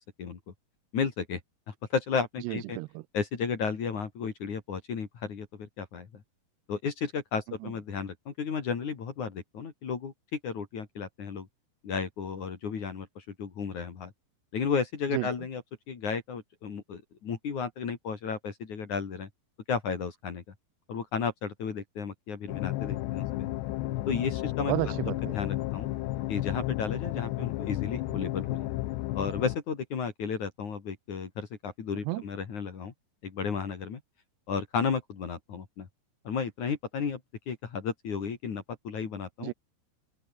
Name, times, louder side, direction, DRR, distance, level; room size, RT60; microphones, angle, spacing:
voice 1, 0.9-1.4 1.7-2.8 3.1-6.1 6.7-11.5 11.8-14.1 14.5-15.6 15.9-19.3 19.7-20.4 20.9-23.3 24.1-24.7 25.3-25.9 26.3-28.7 29.1-32.9 33.2-34.0 34.5-35.9 36.3-37.2 37.5-39.5, left 6 dB, 50° left, 3.9 m, -33 dB
voice 2, 2.4-3.0 15.1-15.3 24.7-25.4 32.1-32.2 39.4-39.5, right 21 dB, 85° right, 2.7 m, -31 dB
sound 1, 22.5-29.6, left 17 dB, 90° left, 3.2 m, -32 dB
omnidirectional pair, 4.9 m